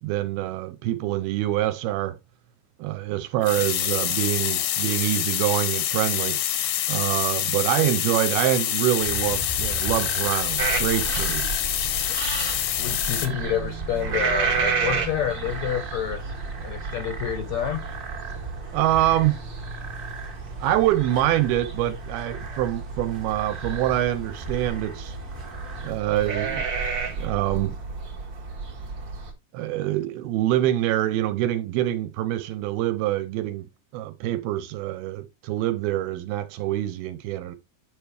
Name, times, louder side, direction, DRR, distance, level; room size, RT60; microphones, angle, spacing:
voice 1, 0.0-2.2 2.8-6.4 6.9-11.5 18.7-19.4 20.6-25.2 25.8-26.7 27.1-27.8 29.5-33.7 33.9-37.6, right 14 dB, 80° right, 2.5 m, -25 dB
sound 1, 3.4-13.3, left 12 dB, 90° left, 3.2 m, -26 dB
sound 2, 9.0-25.9, right 4 dB, 35° right, 1.4 m, -39 dB
sound 3, 10.6-29.3, right 4 dB, 50° right, 1.4 m, -32 dB
voice 2, 12.8-16.3 16.6-17.9, left 9 dB, 75° left, 1.6 m, -28 dB
9.7 x 5.2 x 3.2 m
omnidirectional pair, 4.7 m